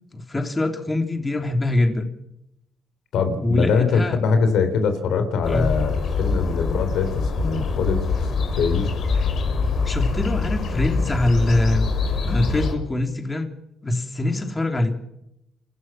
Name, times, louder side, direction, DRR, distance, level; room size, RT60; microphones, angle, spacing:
voice 1, 0.1-2.1 3.4-4.2 5.5-5.7 9.9-11.9 12.2-13.5 13.8-15.0, left 2 dB, 20° left, 5 dB, 3.2 m, -23 dB
voice 2, 3.1-8.9, left 5 dB, 80° left, 8 dB, 3.8 m, -23 dB
sound 1, 5.4-12.7, left 4 dB, 65° left, 4.9 m, -24 dB
28.0 x 15.0 x 6.1 m, 0.80 s
cardioid pair, 90°, 0 cm